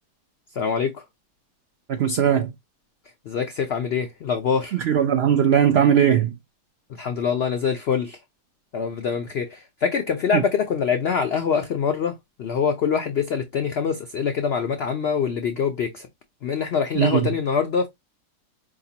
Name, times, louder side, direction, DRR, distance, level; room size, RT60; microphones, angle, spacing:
voice 1, 0.6-1.0 3.3-4.8 7.0-8.2 8.7-16.1 16.4-17.9, left 6 dB, 80° left, 0.5 m, -24 dB
voice 2, 1.9-2.5 4.7-6.3 10.3-10.4 16.9-17.3, right 9 dB, 85° right, 0.5 m, -19 dB
4.8 x 2.9 x 2.7 m
omnidirectional pair, 1.7 m